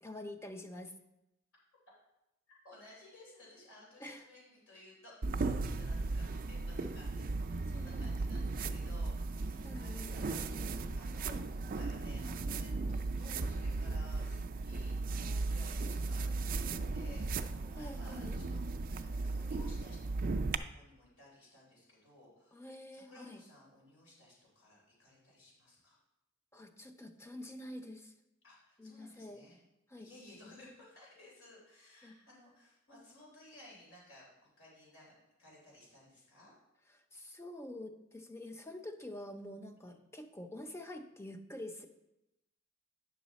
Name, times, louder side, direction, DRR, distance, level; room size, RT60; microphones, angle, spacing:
voice 1, 0.0-0.9 4.0-4.2 5.8-6.0 7.7-8.2 9.6-10.1 16.0-16.5 17.8-18.4 22.5-23.4 26.5-28.1 28.8-29.4 29.9-30.1 30.4-30.5 32.0-32.1 37.1-41.9, left 1 dB, 15° left, 6 dB, 0.7 m, -47 dB
voice 2, 2.5-22.7 22.9-26.0 28.4-29.6 30.0-35.1 35.4-36.5 39.9-40.0, left 1 dB, 80° left, -4 dB, 3.6 m, -57 dB
sound 1, 5.2-20.6, right 3 dB, 45° right, 0.4 m, -36 dB
9.5 x 6.1 x 4.1 m, 0.89 s
head